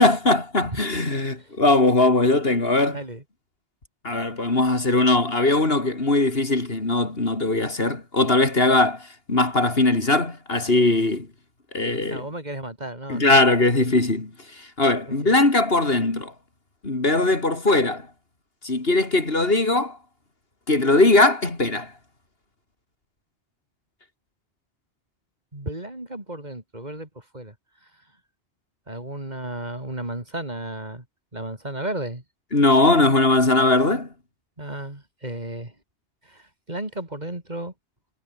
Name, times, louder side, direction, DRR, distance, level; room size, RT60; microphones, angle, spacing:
voice 1, 0.0-3.0 4.0-11.3 11.7-12.3 13.1-14.3 14.8-16.3 16.8-18.1 18.6-20.0 20.7-21.9 32.5-34.1, left 2 dB, 60° left, 3.6 m, -20 dB
voice 2, 2.9-3.2 12.1-13.3 15.2-15.3 25.5-27.1 27.3-27.5 28.9-31.0 31.3-32.2 34.6-35.7 36.3-37.7, right 1 dB, 40° right, 4.4 m, -33 dB
omnidirectional pair, 1.1 m